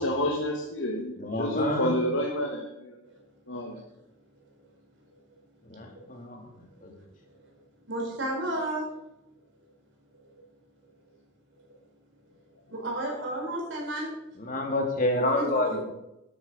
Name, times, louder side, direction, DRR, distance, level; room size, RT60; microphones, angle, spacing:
voice 1, 0.0-3.0 3.5-3.8, equal, 70° left, 0 dB, 1.7 m, -29 dB
voice 2, 1.2-2.0 5.7-6.4 6.8-6.9 14.4-15.8, left 1 dB, 40° left, 2 dB, 2.5 m, -28 dB
voice 3, 7.9-8.9 10.2-10.3 12.7-14.1 15.1-15.8, right 1 dB, 65° right, 0 dB, 4.6 m, -33 dB
12.0 x 10.0 x 5.4 m, 0.88 s
head